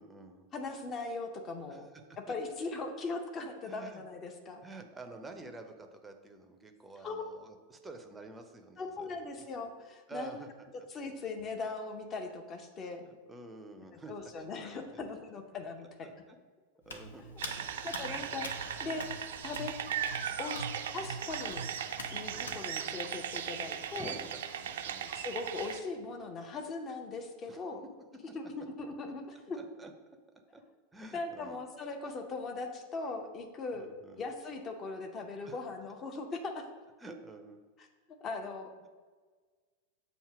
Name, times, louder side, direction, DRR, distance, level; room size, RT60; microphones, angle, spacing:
voice 1, 0.0-0.5 1.7-1.9 3.6-4.0 4.6-9.3 10.1-10.5 13.0-14.1 14.4-14.5 14.9-15.0 16.0-16.1 16.9-17.2 17.6-17.7 18.1-18.4 22.3-22.6 23.9-25.1 27.4-27.6 29.5-29.9 30.5-30.6 30.9-31.6 33.7-34.3 35.5-35.6 37.0-37.6 38.8-38.9, right 3 dB, 10° right, 5 dB, 0.6 m, -49 dB
voice 2, 0.5-1.9 2.3-4.6 7.0-7.2 8.8-10.4 10.9-13.0 13.9-16.1 17.8-18.5 18.8-19.1 19.4-19.7 20.4-20.6 20.9-21.6 22.1-24.1 25.1-27.8 28.3-29.6 31.1-33.9 34.2-36.6 38.2-38.9, left 3 dB, 25° left, 4 dB, 0.7 m, -39 dB
Hands, 16.9-22.6, equal, 65° left, 0.6 m, -45 dB
sound 1, 17.4-25.8, right 8 dB, 60° right, 0.4 m, -38 dB
7.1 x 2.8 x 4.9 m, 1.4 s
figure-of-eight pair, 90°, 0 cm